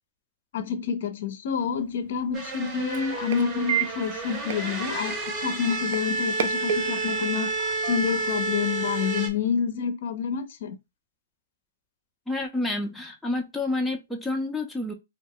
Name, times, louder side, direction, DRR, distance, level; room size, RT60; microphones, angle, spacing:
voice 1, 0.5-7.5 7.8-10.8, left 7 dB, 60° left, 0.4 m, -28 dB
sound 1, 1.5-9.4, right 8 dB, 65° right, 0.5 m, -35 dB
sound 2, 2.3-9.3, right 3 dB, 25° right, 0.8 m, -30 dB
voice 2, 12.3-14.9, left 2 dB, ahead, 0.4 m, -29 dB
2.3 x 2.1 x 3.5 m
hypercardioid pair, 140°, 0 cm